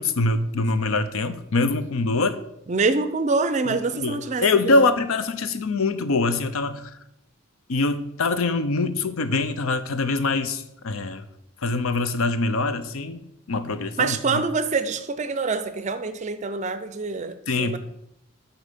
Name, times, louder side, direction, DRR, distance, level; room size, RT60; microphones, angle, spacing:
voice 1, 0.0-2.4 3.7-6.9 7.7-11.3 11.6-14.4 17.5-17.8, left 3 dB, 75° left, 11 dB, 0.6 m, -24 dB
voice 2, 2.7-4.9 14.0-17.8, right 4 dB, 35° right, 11 dB, 0.4 m, -25 dB
8.2 x 4.0 x 5.1 m, 0.81 s
head